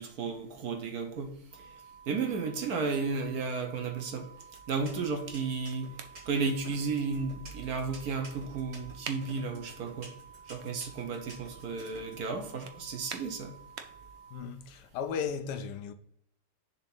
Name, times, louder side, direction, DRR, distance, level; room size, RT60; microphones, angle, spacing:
voice 1, 0.0-1.7 2.1-4.3 4.7-5.9 6.3-10.1 10.5-13.5, right 4 dB, 60° right, 1.2 m, -33 dB
sound 1, 1.5-14.4, right 6 dB, 10° right, 0.9 m, -53 dB
sound 2, 4.4-12.1, right 2 dB, 45° right, 2.1 m, -49 dB
sound 3, 4.9-14.2, right 7 dB, 80° right, 0.5 m, -50 dB
voice 2, 14.3-15.9, left 7 dB, 75° left, 1.1 m, -35 dB
6.9 x 2.9 x 5.4 m
omnidirectional pair, 1.9 m